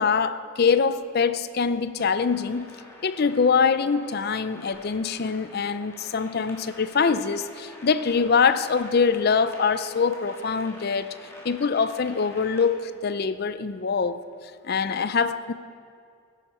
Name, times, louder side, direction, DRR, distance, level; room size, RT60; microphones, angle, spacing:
voice 1, 0.0-2.7 3.0-11.1 11.4-14.2 14.6-15.5, left 5 dB, 50° left, 13 dB, 0.5 m, -24 dB
sound 1, 2.0-12.6, left 1 dB, 10° left, 1.7 m, -47 dB
16.0 x 10.5 x 4.4 m, 2.4 s
head